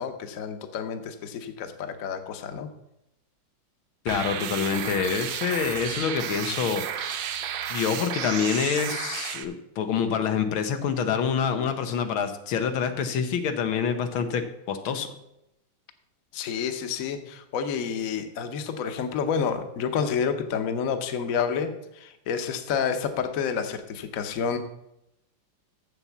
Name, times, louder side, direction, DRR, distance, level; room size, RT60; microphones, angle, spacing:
voice 1, 0.0-2.7 16.3-24.6, left 6 dB, 55° left, 8 dB, 1.0 m, -29 dB
voice 2, 4.0-7.2 7.7-15.1, left 7 dB, 90° left, 7 dB, 1.7 m, -27 dB
sound 1, 4.1-9.4, right 9 dB, 75° right, 1.5 m, -32 dB
7.2 x 7.0 x 7.1 m, 0.84 s
omnidirectional pair, 2.2 m